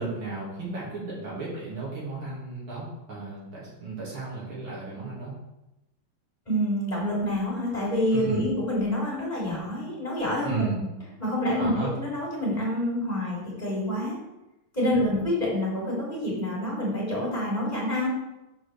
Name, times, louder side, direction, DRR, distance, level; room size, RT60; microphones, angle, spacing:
voice 1, 0.0-5.3 8.1-8.5 10.4-10.8 11.6-11.9, right 4 dB, 70° right, -6 dB, 3.1 m, -33 dB
voice 2, 6.5-10.7 11.2-14.2 14.7-18.1, left 1 dB, 20° left, -5 dB, 3.2 m, -27 dB
6.1 x 5.0 x 6.5 m, 0.94 s
omnidirectional pair, 2.4 m